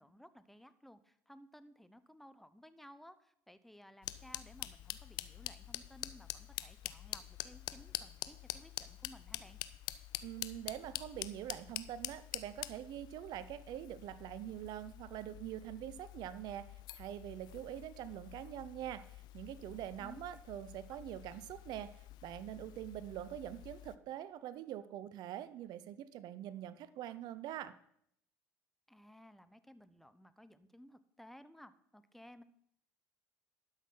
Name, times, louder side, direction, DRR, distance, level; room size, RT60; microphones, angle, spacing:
voice 1, 0.0-9.6 20.0-20.2 28.9-32.4, equal, 5° left, 13 dB, 0.8 m, -58 dB
sound 1, 4.0-24.0, left 14 dB, 65° left, 0.6 m, -47 dB
voice 2, 10.2-16.7 16.9-27.7, right 12 dB, 60° right, 15 dB, 0.6 m, -44 dB
12.0 x 6.5 x 5.6 m, 0.69 s
hypercardioid pair, 70°, 8 cm